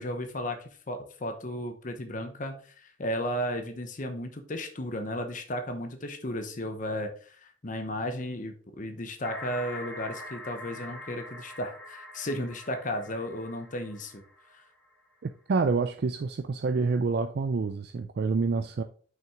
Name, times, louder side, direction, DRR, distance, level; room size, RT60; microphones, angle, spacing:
voice 1, 0.0-14.2 14.5-14.6, left 1 dB, 40° left, 0.9 m, -34 dB
sound 1, 9.2-14.9, left 1 dB, 10° left, 1.7 m, -44 dB
voice 2, 15.2-18.8, right 4 dB, 55° right, 0.4 m, -27 dB
5.9 x 5.9 x 3.6 m
head